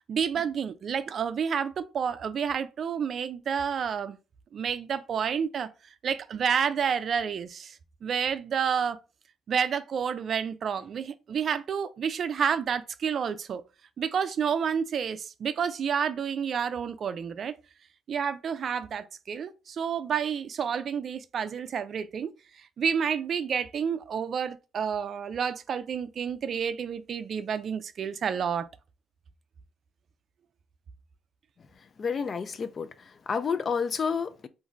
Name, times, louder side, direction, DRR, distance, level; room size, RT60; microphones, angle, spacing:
voice 1, 0.1-4.2 4.5-5.7 6.0-7.8 8.0-9.0 9.5-13.6 14.0-17.6 18.1-22.3 22.8-28.7, right 7 dB, 55° right, 0.3 m, -29 dB
voice 2, 32.0-34.5, left 6 dB, 45° left, 0.3 m, -30 dB
2.5 x 2.4 x 3.1 m
cardioid pair, 90°, 0 cm